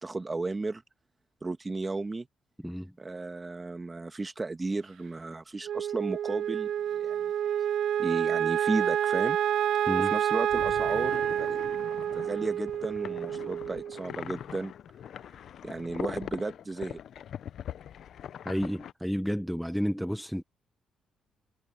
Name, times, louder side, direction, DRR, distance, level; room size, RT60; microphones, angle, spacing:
voice 1, 0.0-0.8 1.4-2.3 3.0-7.3 8.0-9.4 10.0-11.6 12.1-14.7 15.6-17.0, right 3 dB, 25° right, 1.6 m, -34 dB
Wind instrument woodwind instrument, 5.6-14.1, right 10 dB, 75° right, 0.4 m, -29 dB
sound 1, 10.5-18.9, left 9 dB, 65° left, 0.7 m, -42 dB
voice 2, 18.4-20.4, equal, ahead, 0.9 m, -31 dB
cardioid pair, 90°, 0 cm